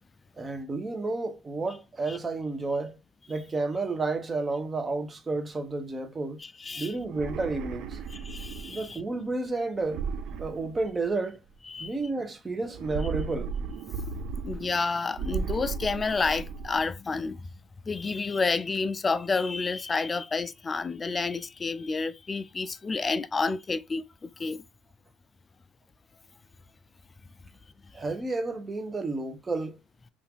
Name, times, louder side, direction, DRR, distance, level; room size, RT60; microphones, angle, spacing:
voice 1, 0.4-3.0 3.3-6.4 6.8-8.0 8.7-10.0 10.4-11.4 11.8-13.5 27.9-29.8, right 3 dB, 25° right, 0.7 m, -31 dB
voice 2, 6.4-6.9 8.1-9.0 11.7-11.9 14.4-17.5 17.9-24.6, left 4 dB, 25° left, 0.3 m, -30 dB
sound 1, 7.0-8.9 9.8-11.3 12.7-14.8 15.1-16.8, right 5 dB, 60° right, 0.3 m, -35 dB
2.7 x 2.4 x 3.4 m
supercardioid pair, 90°, 0 cm